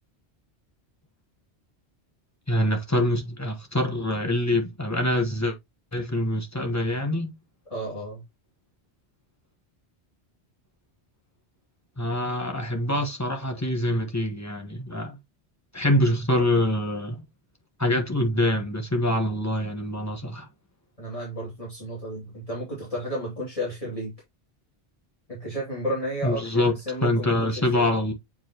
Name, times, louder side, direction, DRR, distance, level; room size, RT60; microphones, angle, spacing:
voice 1, 2.5-5.5 5.9-7.3 12.0-15.2 15.7-17.3 17.8-20.5 26.2-26.7 27.0-28.1, left 1 dB, 15° left, 1.2 m, -25 dB
voice 2, 7.7-8.2 21.0-24.1 25.3-27.9, equal, 30° left, 2.7 m, -32 dB
7.3 x 4.9 x 2.9 m
omnidirectional pair, 1.1 m